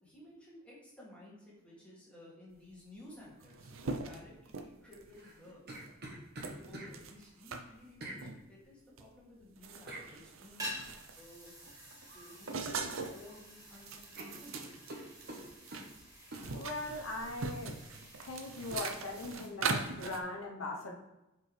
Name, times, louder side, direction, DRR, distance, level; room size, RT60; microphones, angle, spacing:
voice 1, 0.0-5.6 6.3-10.7 11.2-11.5 12.1-14.8, left 1 dB, 5° left, -8 dB, 2.6 m, -55 dB
sound 1, 2.9-3.0 3.2-5.2 5.7-5.9 6.4-7.6 8.2-8.4 9.0-9.1 9.4-11.3 11.6-13.2 13.6-15.8 16.1-20.2, right 4 dB, 75° right, 0.7 m, -41 dB
sound 2, 5.1-6.9 8.0-8.2 9.9-10.1 12.1-12.4 12.7-13.4 13.7-13.8 14.1-15.9 16.3-16.5, right 1 dB, 50° right, 1.3 m, -46 dB
sound 3, 10.4-19.5, equal, 15° right, 1.5 m, -49 dB
voice 2, 16.5-17.7 18.2-20.9, left 2 dB, 90° left, 1 dB, 1.0 m, -40 dB
7.7 x 5.0 x 3.4 m, 0.99 s
head